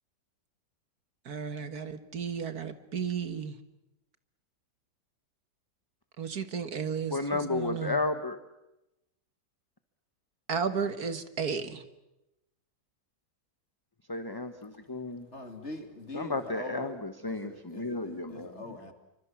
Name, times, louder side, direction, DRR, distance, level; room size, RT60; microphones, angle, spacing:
voice 1, 1.3-3.5 6.2-8.0 10.5-11.8, right 6 dB, 60° right, 11 dB, 2.1 m, -33 dB
voice 2, 7.1-8.4 14.1-15.3 16.1-18.8, left 3 dB, 15° left, 9 dB, 1.1 m, -33 dB
voice 3, 15.3-16.9 17.3-18.9, left 2 dB, 40° left, 8 dB, 3.1 m, -43 dB
28.0 x 25.0 x 7.3 m, 0.92 s
omnidirectional pair, 1.9 m